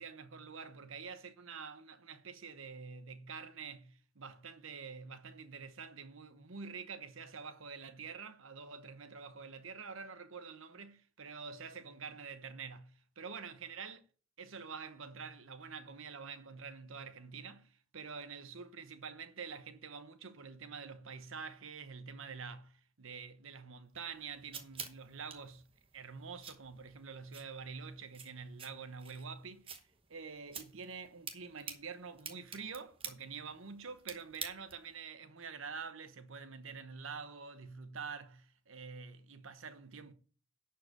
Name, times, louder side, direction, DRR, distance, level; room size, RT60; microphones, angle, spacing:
voice 1, 0.0-14.0 14.4-25.7 25.9-29.7 30.1-40.1, right 5 dB, 65° right, 1.0 m, -47 dB
sound 1, 23.9-35.0, right 6 dB, 25° right, 1.0 m, -50 dB
11.0 x 4.8 x 6.6 m
head